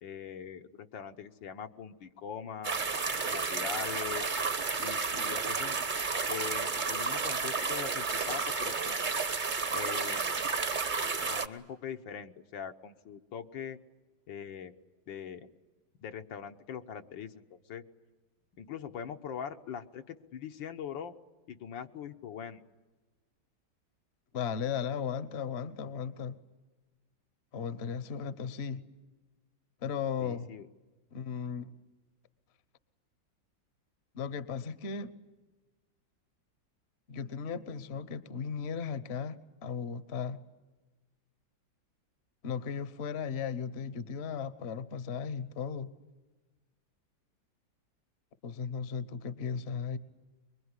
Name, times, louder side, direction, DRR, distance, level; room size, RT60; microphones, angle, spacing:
voice 1, 0.0-2.8 3.3-4.3 4.8-5.8 6.3-9.1 9.7-10.3 11.3-13.8 14.3-14.7 15.1-15.5 16.0-17.8 18.6-21.1 21.5-22.6 30.2-30.7, left 8 dB, 75° left, 6 dB, 1.8 m, -42 dB
sound 1, 2.6-11.5, right 4 dB, 30° right, 1.0 m, -32 dB
voice 2, 24.3-26.4 27.5-28.8 29.8-30.5 31.1-31.7 34.1-35.1 37.1-40.4 42.4-45.9 48.4-50.0, left 6 dB, 40° left, 14 dB, 1.1 m, -36 dB
24.5 x 23.0 x 9.8 m, 1.2 s
omnidirectional pair, 2.0 m